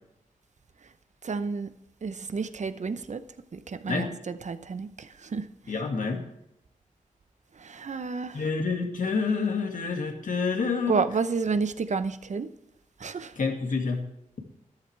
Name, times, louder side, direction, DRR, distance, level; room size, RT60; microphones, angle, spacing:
voice 1, 1.2-1.7 2.0-3.2 3.5-5.7 7.6-8.4 10.9-12.5 13.0-13.3, right 4 dB, 60° right, 0.8 m, -30 dB
voice 2, 5.7-6.2 8.3-11.0 13.4-14.0, left 4 dB, 75° left, 2.1 m, -28 dB
13.0 x 11.0 x 3.4 m
cardioid pair, 60°, 14 cm